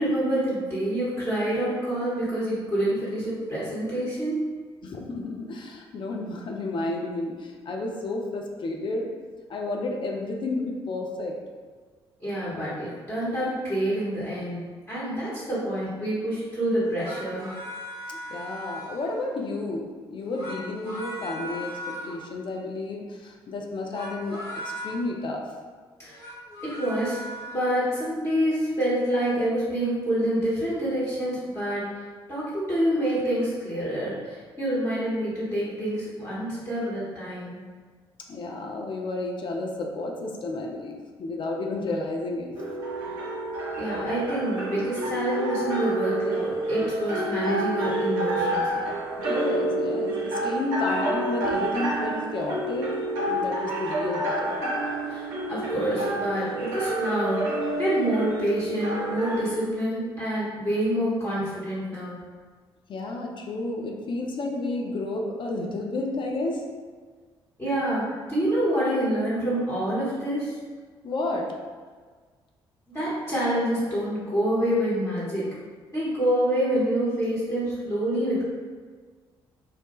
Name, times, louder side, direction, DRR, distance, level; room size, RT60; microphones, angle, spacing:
voice 1, 0.0-4.5 12.2-17.5 26.0-26.2 26.6-27.2 27.5-31.9 32.3-37.6 43.8-49.0 55.1-57.4 57.8-62.2 67.6-68.0 68.3-70.5 72.9-75.5 75.9-78.5, right 1 dB, 20° left, -10 dB, 1.0 m, -27 dB
voice 2, 4.8-9.1 9.5-11.3 18.1-24.5 24.8-25.4 38.3-42.5 49.1-53.0 53.2-54.6 62.9-66.7 71.0-71.6, left 2 dB, 40° left, 1 dB, 0.4 m, -31 dB
sound 1, 16.8-19.3 20.2-22.2 23.8-24.9 26.0-27.7, equal, 65° left, 0.9 m, -38 dB
sound 2, 42.6-59.6, right 1 dB, 70° right, 0.5 m, -29 dB
2.7 x 2.1 x 3.0 m, 1.5 s
figure-of-eight pair, 40°, 13 cm